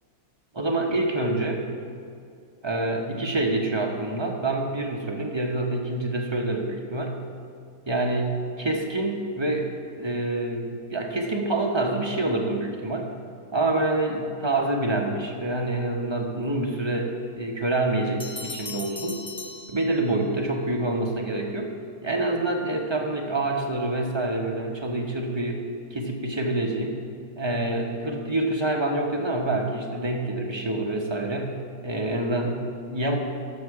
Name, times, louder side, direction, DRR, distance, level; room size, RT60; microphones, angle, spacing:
voice 1, 0.5-1.6 2.6-7.2 7.9-9.7 10.0-13.1 13.5-19.2 19.7-21.7 22.0-25.6 25.9-27.0 27.4-31.5 31.8-33.2, right 2 dB, 20° right, 1 dB, 0.8 m, -26 dB
Bell, 18.2-20.4, left 3 dB, 10° left, 0.3 m, -39 dB
13.0 x 6.4 x 4.8 m, 2.3 s
omnidirectional pair, 1.5 m